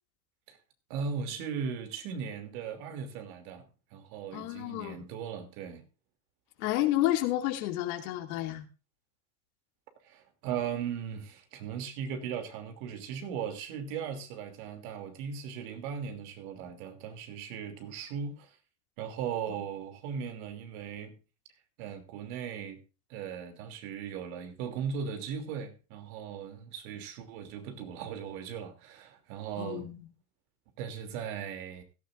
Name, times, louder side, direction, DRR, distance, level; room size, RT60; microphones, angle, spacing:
voice 1, 0.9-3.7 3.9-5.8 10.0-18.6 19.0-21.2 21.8-22.8 23.1-29.9 30.8-31.8, right 7 dB, 65° right, 2.9 m, -38 dB
voice 2, 4.3-5.0 6.6-8.6 19.5-19.6 29.6-30.1, left 14 dB, 65° left, 2.5 m, -30 dB
16.5 x 12.5 x 2.6 m
supercardioid pair, 115°, 46 cm